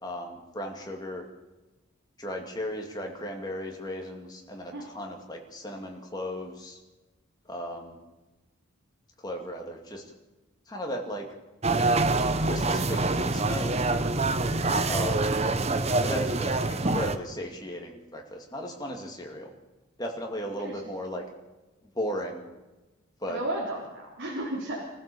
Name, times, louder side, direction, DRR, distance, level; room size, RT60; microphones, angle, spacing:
voice 1, 0.0-1.2 2.2-6.8 7.5-8.0 9.2-10.0 10.7-11.3 12.4-13.7 14.9-15.3 16.0-19.5 20.0-21.2 21.9-22.4 23.2-23.4, equal, 20° left, 1 dB, 2.4 m, -36 dB
sound 1, 11.6-17.2, right 2 dB, 30° right, 0.8 m, -25 dB
voice 2, 23.3-24.8, right 1 dB, 60° right, -4 dB, 4.0 m, -34 dB
25.0 x 15.0 x 7.0 m, 1.1 s
head